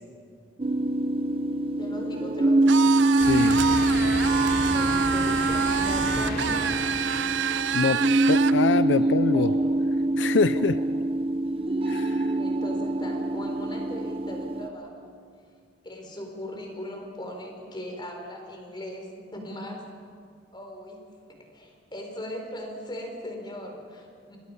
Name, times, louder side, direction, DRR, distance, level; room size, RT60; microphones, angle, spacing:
sound 1, 0.6-14.7, right 2 dB, 30° right, 0.8 m, -24 dB
voice 1, 1.8-2.9 4.6-6.7 8.9-9.7 10.5-10.7 12.4-15.1 15.8-19.8 20.5-21.0 21.5-24.4, left 1 dB, 25° left, 2 dB, 4.2 m, -38 dB
sound 2, 2.7-8.6, right 8 dB, 80° right, 0.5 m, -28 dB
voice 2, 3.2-3.6 7.7-8.0 8.3-9.5 10.2-10.8 11.9-12.3, left 4 dB, 80° left, 13 dB, 0.5 m, -25 dB
sound 3, 3.2-8.8 9.3-9.4 10.7-10.8, left 1 dB, 55° left, 3.3 m, -34 dB
28.5 x 22.0 x 5.5 m, 2.2 s
head